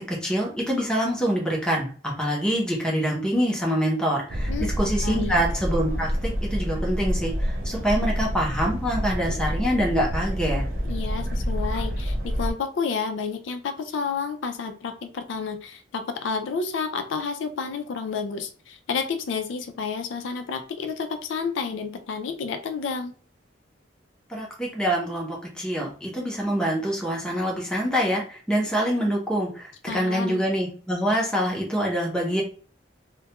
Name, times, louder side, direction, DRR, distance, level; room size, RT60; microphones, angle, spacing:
voice 1, 0.0-4.5 4.8-10.6 24.3-32.4, equal, 5° left, -2 dB, 0.6 m, -25 dB
sound 1, 4.3-12.5, equal, 50° right, 0.5 m, -28 dB
voice 2, 5.0-5.3 10.8-23.1 29.9-30.4, left 5 dB, 80° left, 7 dB, 0.4 m, -30 dB
2.3 x 2.1 x 2.8 m, 0.39 s
head